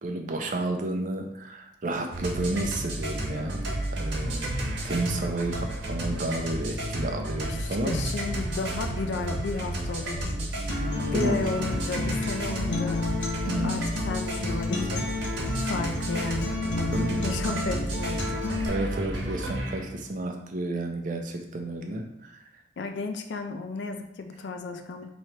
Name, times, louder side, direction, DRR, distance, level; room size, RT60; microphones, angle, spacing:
voice 1, 0.0-3.7 3.9-8.0 11.1-11.4 13.5-13.9 16.9-17.2 18.7-22.4, right 2 dB, 45° right, 3 dB, 0.5 m, -31 dB
sound 1, 2.1-20.0, right 1 dB, 70° right, 1.1 m, -32 dB
voice 2, 7.4-10.5 11.1-13.0 13.6-15.0 15.6-16.6 17.2-18.6 22.8-25.1, left 3 dB, 70° left, 6 dB, 0.4 m, -33 dB
Acoustic guitar, 10.7-18.7, left 3 dB, 90° left, 0.9 m, -32 dB
3.1 x 2.9 x 4.4 m, 0.78 s
head